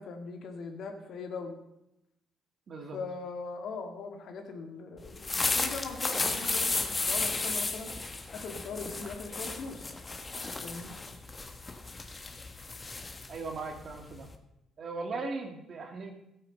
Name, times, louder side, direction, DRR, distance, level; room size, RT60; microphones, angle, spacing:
voice 1, 0.0-1.6 2.9-7.9 8.3-9.9 10.6-11.0, left 4 dB, 70° left, 4 dB, 2.0 m, -40 dB
voice 2, 2.7-3.0 13.3-14.3 14.8-16.1, right 3 dB, 55° right, 4 dB, 2.4 m, -38 dB
sound 1, 5.0-14.3, left 3 dB, 30° left, 1.6 m, -34 dB
12.5 x 8.9 x 5.6 m, 0.85 s
supercardioid pair, 60°, 0 cm